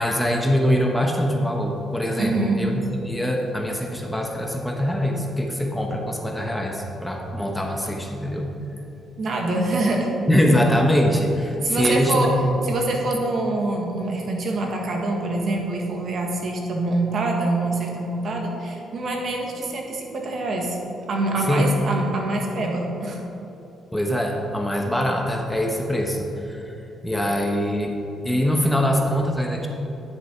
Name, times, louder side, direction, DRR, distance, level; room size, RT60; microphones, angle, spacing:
voice 1, 0.0-8.5 10.3-12.6 21.5-21.8 23.9-26.7 27.0-27.9 28.2-29.7, equal, 5° left, 1 dB, 1.0 m, -23 dB
voice 2, 2.2-2.6 9.2-10.1 11.6-12.3 12.6-20.8 21.1-23.2, right 2 dB, 55° right, 1 dB, 1.6 m, -25 dB
11.0 x 6.3 x 4.5 m, 3.0 s
cardioid pair, 90°, 0 cm